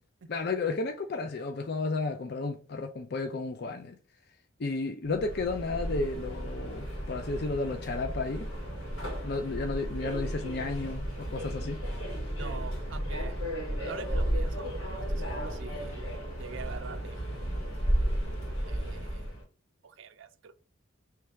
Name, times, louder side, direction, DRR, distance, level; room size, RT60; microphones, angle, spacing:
voice 1, 0.3-4.0 4.6-8.5 9.2-11.8, left 3 dB, 50° left, 0.5 m, -33 dB
Subway metro underground, 5.1-19.4, equal, 80° left, 2.3 m, -33 dB
voice 2, 12.4-13.3 13.8-16.0 16.4-17.2 17.5-17.9 18.7-19.4 19.8-20.6, right 6 dB, 70° right, 0.5 m, -45 dB
3.3 x 3.3 x 4.6 m
head